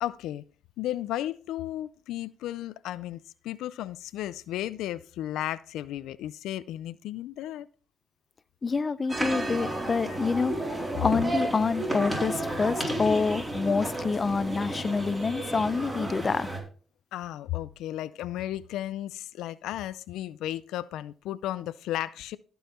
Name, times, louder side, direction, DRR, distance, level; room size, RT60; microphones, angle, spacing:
voice 1, 0.0-0.4 0.8-7.7 17.1-22.4, left 13 dB, 90° left, 0.4 m, -34 dB
voice 2, 8.6-10.5 11.0-16.5, left 4 dB, 35° left, 0.6 m, -27 dB
sound 1, 9.1-16.6, right 1 dB, 10° right, 4.4 m, -32 dB
16.0 x 5.5 x 4.4 m
cardioid pair, 90°, 0 cm